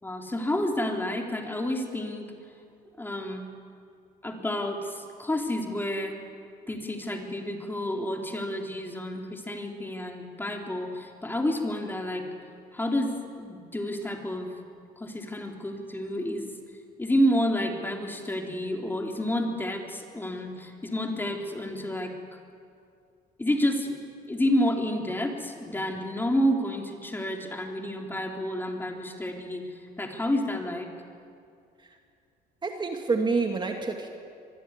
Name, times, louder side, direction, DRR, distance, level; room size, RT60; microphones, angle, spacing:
voice 1, 0.0-2.3 3.0-3.4 4.2-6.1 6.7-12.3 12.7-14.5 15.0-16.5 17.0-22.1 23.4-24.0 24.3-30.9, left 1 dB, 10° left, 2 dB, 3.7 m, -29 dB
voice 2, 32.6-34.1, right 4 dB, 25° right, 3 dB, 2.5 m, -27 dB
25.0 x 21.5 x 9.8 m, 2.4 s
cardioid pair, 110°, 17 cm